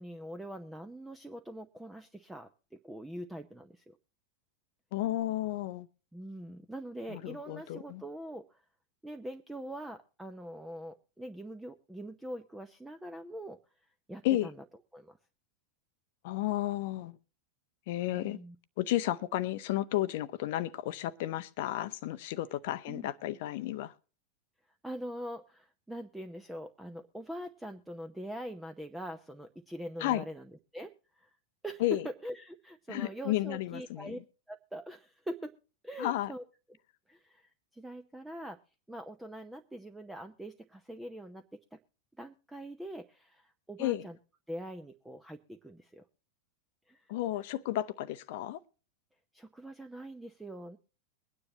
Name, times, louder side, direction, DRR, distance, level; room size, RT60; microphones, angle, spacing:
voice 1, 0.0-4.0 6.1-8.6 9.0-13.6 14.1-14.6 14.9-15.2 18.1-18.6 22.9-23.1 24.8-30.5 30.7-31.4 31.6-34.2 34.5-35.6 35.8-36.4 37.1-38.6 38.9-41.8 42.2-44.2 44.5-46.0 46.9-47.1 49.3-50.8, right 1 dB, 5° right, 0.7 m, -43 dB
voice 2, 4.9-5.9 7.1-8.0 14.2-14.5 16.2-17.2 17.9-18.4 18.8-23.9 30.0-30.2 31.8-32.1 32.9-34.2 36.0-36.3 43.8-44.1 47.1-48.6, left 14 dB, 50° left, 0.7 m, -32 dB
23.0 x 9.8 x 2.9 m
figure-of-eight pair, 90°, 0 cm